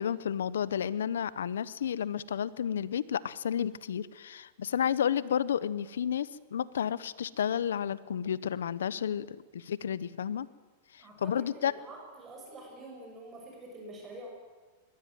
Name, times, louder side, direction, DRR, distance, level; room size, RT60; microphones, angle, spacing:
voice 1, 0.0-10.5 10.9-11.7, left 8 dB, 90° left, 19 dB, 0.9 m, -31 dB
voice 2, 11.0-14.4, right 1 dB, 25° right, 1 dB, 6.5 m, -47 dB
20.5 x 15.5 x 9.3 m, 1.3 s
hypercardioid pair, 125°, 0 cm